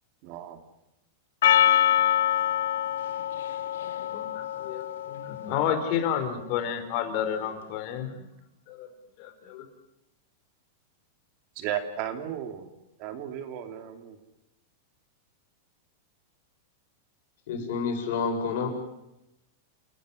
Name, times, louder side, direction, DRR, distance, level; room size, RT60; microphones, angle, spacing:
voice 1, 0.2-0.6 11.6-12.7 13.0-14.2, right 10 dB, 40° right, 6 dB, 2.7 m, -34 dB
Percussion, 1.4-6.0, left 11 dB, 80° left, 1.1 m, -25 dB
voice 2, 4.1-8.2 8.7-8.9 9.2-9.6, left 9 dB, 45° left, 8 dB, 4.4 m, -31 dB
voice 3, 17.5-18.7, left 5 dB, 60° left, 3 dB, 7.8 m, -29 dB
29.5 x 14.5 x 9.9 m, 0.90 s
supercardioid pair, 160°, 0 cm